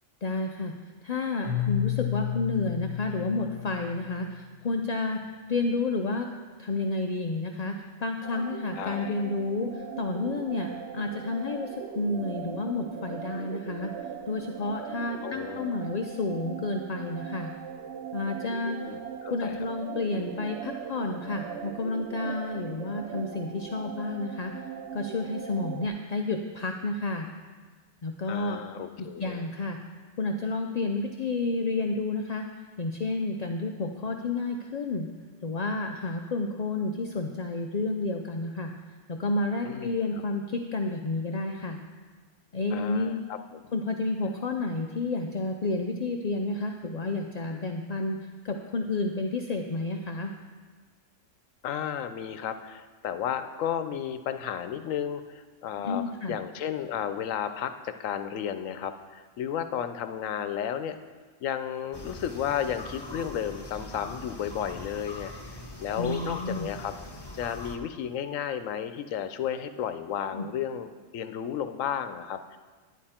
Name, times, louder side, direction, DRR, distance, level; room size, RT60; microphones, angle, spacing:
voice 1, 0.2-0.8 1.0-5.2 5.5-6.3 6.6-17.5 18.1-18.8 19.3-24.5 24.9-27.3 28.0-28.6 29.0-29.8 30.2-32.5 32.8-35.1 35.4-38.7 39.1-41.8 42.5-43.2 43.7-48.2 48.4-50.3 55.8-56.4 66.0-66.7 70.3-70.5, left 3 dB, 50° left, 3 dB, 0.5 m, -30 dB
Keyboard (musical), 1.4-4.4, left 14 dB, 20° right, 3.3 m, -31 dB
sound 1, 8.2-25.9, right 8 dB, 65° right, 0.9 m, -40 dB
voice 2, 8.8-9.1 15.2-15.7 18.8-19.6 28.3-29.4 39.6-39.9 42.7-43.4 51.6-61.0 61.4-65.3 65.8-66.9 67.3-70.9 71.1-72.6, left 9 dB, 85° left, 10 dB, 1.0 m, -33 dB
sound 2, 61.9-67.8, left 2 dB, 20° left, 1.0 m, -42 dB
11.0 x 10.0 x 4.3 m, 1.4 s
omnidirectional pair, 1.3 m